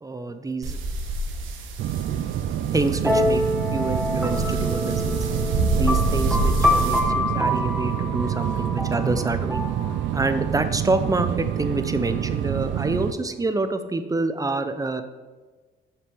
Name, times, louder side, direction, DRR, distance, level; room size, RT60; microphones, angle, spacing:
voice 1, 0.0-0.8 2.7-3.4 3.7-5.3 5.7-9.9 10.1-15.0, right 2 dB, 15° right, 10 dB, 0.7 m, -27 dB
sound 1, 0.6-7.0, right 1 dB, 85° right, 1.3 m, -28 dB
sound 2, 1.8-13.1, right 11 dB, 70° right, 0.5 m, -27 dB
sound 3, 3.0-10.6, left 1 dB, ahead, 1.4 m, -27 dB
8.0 x 5.9 x 5.3 m, 1.3 s
cardioid pair, 90°, 20 cm